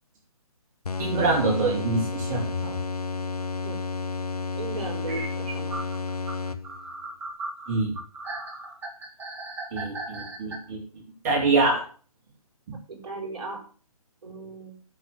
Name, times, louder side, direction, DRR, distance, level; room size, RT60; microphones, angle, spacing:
sound 1, 0.8-7.0, left 4 dB, 75° left, 1.2 m, -31 dB
voice 1, 1.0-2.8 5.1-5.3 7.7-7.9 9.7-10.8 11.2-11.8, right 3 dB, 30° right, -1 dB, 3.5 m, -25 dB
sound 2, 3.4-3.5 4.9-5.0 5.7-10.6, right 2 dB, 10° right, 1.8 m, -37 dB
voice 2, 4.5-5.8 12.9-13.6 14.2-14.7, right 3 dB, 45° right, -1 dB, 5.8 m, -36 dB
9.4 x 7.8 x 6.8 m, 0.42 s
figure-of-eight pair, 145°, 19 cm